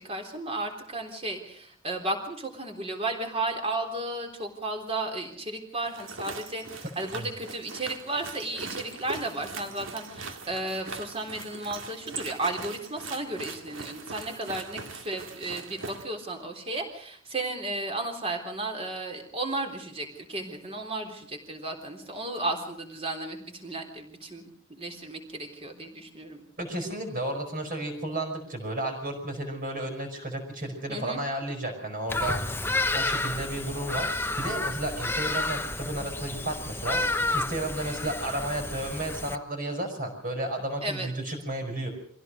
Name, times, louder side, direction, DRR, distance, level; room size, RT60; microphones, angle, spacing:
voice 1, 0.0-26.4 30.9-31.2 40.8-41.1, right 2 dB, 30° right, 3 dB, 3.7 m, -34 dB
sound 1, 5.8-16.0, right 4 dB, 75° right, 2.2 m, -41 dB
voice 2, 26.6-32.4 32.9-34.1 34.4-41.9, right 1 dB, 45° right, 2 dB, 5.6 m, -33 dB
Bird vocalization bird call bird song, 32.1-39.4, left 2 dB, 10° left, 0.8 m, -30 dB
25.0 x 16.0 x 6.5 m, 0.63 s
head